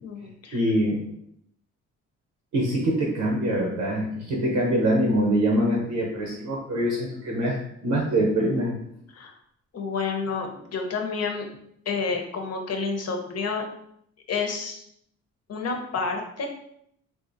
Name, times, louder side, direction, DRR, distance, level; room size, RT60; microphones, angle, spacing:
voice 1, 0.0-0.6 9.1-9.3 9.7-11.4 11.9-13.6 14.3-14.8 15.5-16.5, left 4 dB, 55° left, 2 dB, 0.8 m, -29 dB
voice 2, 0.5-1.0 2.5-7.6 7.8-8.8, right 1 dB, 80° right, -2 dB, 0.9 m, -24 dB
3.6 x 2.6 x 2.6 m, 0.71 s
cardioid pair, 90°, 30 cm